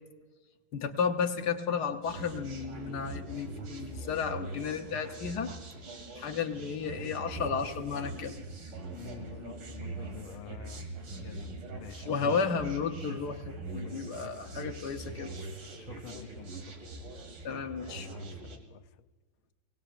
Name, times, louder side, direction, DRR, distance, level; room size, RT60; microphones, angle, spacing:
voice 1, 0.7-5.5 6.2-8.4 12.0-15.3 17.4-18.2, left 6 dB, 60° left, 6 dB, 1.3 m, -33 dB
sound 1, 2.0-18.6, right 2 dB, 70° right, 2.6 m, -42 dB
voice 2, 8.9-10.9 11.2-12.5 13.8-14.1 15.7-16.6 18.1-18.8, left 11 dB, 85° left, 11 dB, 1.5 m, -48 dB
24.5 x 18.5 x 2.5 m, 1.2 s
omnidirectional pair, 2.3 m